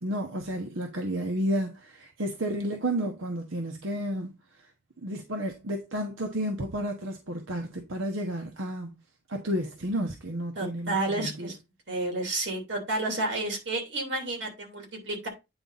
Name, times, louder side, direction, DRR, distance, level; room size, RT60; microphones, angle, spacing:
voice 1, 0.0-4.3 5.0-8.9 9.3-11.5, equal, 85° right, 1.1 m, -31 dB
voice 2, 10.5-11.6 11.9-15.3, right 2 dB, 60° right, 3.0 m, -31 dB
9.0 x 4.0 x 4.0 m
head